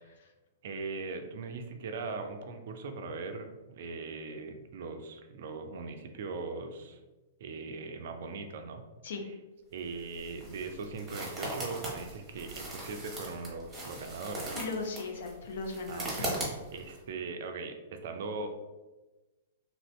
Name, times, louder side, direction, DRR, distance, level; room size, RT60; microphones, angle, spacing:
voice 1, 0.6-7.0 7.4-8.8 9.2-9.4 9.7-14.5 15.9-16.3 16.7-18.5, right 4 dB, 55° right, 5 dB, 0.4 m, -40 dB
sound 1, 9.8-17.0, right 1 dB, 15° right, 1.1 m, -40 dB
voice 2, 14.5-16.4, left 3 dB, 55° left, 4 dB, 0.5 m, -37 dB
2.9 x 2.6 x 3.0 m, 1.1 s
figure-of-eight pair, 105°, 0 cm